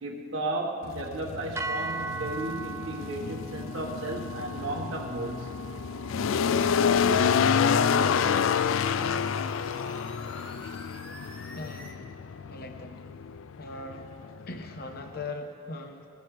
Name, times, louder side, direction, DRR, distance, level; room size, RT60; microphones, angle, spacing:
voice 1, 0.0-5.5, right 2 dB, 85° right, -3 dB, 1.5 m, -34 dB
sound 1, 0.8-15.3, left 6 dB, 85° left, 0.4 m, -28 dB
sound 2, 1.6-9.8, right 4 dB, 15° right, 0.3 m, -41 dB
sound 3, 6.9-11.9, equal, 5° left, 1.5 m, -47 dB
voice 2, 11.5-12.1 12.5-13.1 13.6-14.2 14.5-16.1, left 2 dB, 50° left, 5 dB, 1.0 m, -40 dB
21.0 x 16.5 x 3.3 m, 2.4 s
head